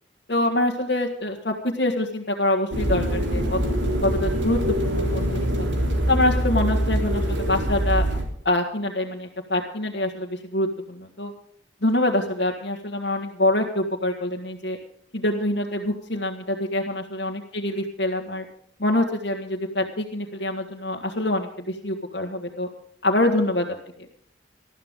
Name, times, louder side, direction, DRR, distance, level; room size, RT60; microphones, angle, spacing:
voice 1, 0.3-3.6 4.0-5.7 6.1-8.0 8.5-11.3 11.8-14.8 15.1-18.4 18.8-22.7 23.0-23.7, left 1 dB, 65° left, -2 dB, 1.7 m, -25 dB
sound 1, 2.7-8.2, equal, 90° right, 3.4 m, -24 dB
20.0 x 13.0 x 3.7 m, 0.67 s
head